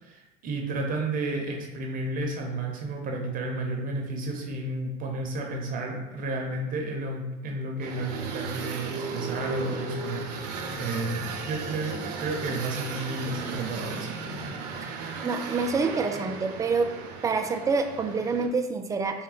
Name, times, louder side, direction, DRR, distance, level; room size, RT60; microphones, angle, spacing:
voice 1, 0.0-14.1, right 2 dB, 40° right, 1 dB, 0.7 m, -32 dB
sound 1, 7.8-18.5, right 4 dB, 80° right, 0.6 m, -35 dB
voice 2, 15.2-16.9 17.2-19.2, right 4 dB, 15° right, 6 dB, 0.4 m, -27 dB
3.8 x 2.2 x 3.9 m, 1.0 s
supercardioid pair, 95°, 21 cm